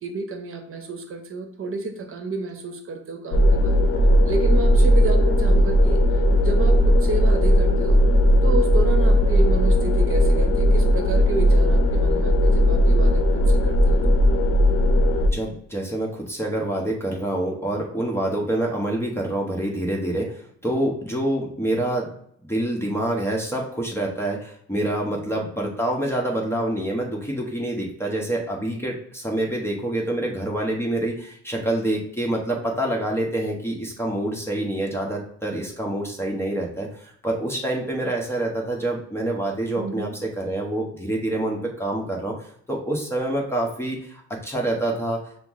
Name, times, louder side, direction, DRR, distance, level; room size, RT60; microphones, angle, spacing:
voice 1, 0.0-3.8 4.3-8.0 8.4-14.2 39.8-40.1, right 3 dB, 45° right, 5 dB, 0.9 m, -31 dB
sound 1, 3.3-15.3, equal, 50° left, 0.7 m, -17 dB
voice 2, 15.3-22.1 22.4-45.2, right 1 dB, 10° left, -1 dB, 0.9 m, -26 dB
5.7 x 2.0 x 3.6 m, 0.65 s
cardioid pair, 90°, 30 cm